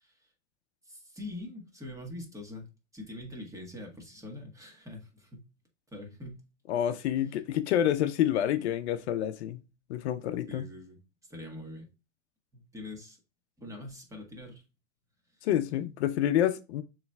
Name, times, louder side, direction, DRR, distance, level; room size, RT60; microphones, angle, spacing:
voice 1, 0.9-5.5 5.9-6.4 10.5-11.0 11.3-11.9 12.5-13.2 13.6-14.6, left 1 dB, 10° right, 1.5 m, -44 dB
voice 2, 6.7-9.6 9.9-10.7 15.4-16.8, left 11 dB, 65° left, 0.7 m, -28 dB
6.9 x 3.2 x 2.3 m
hypercardioid pair, 115°, 36 cm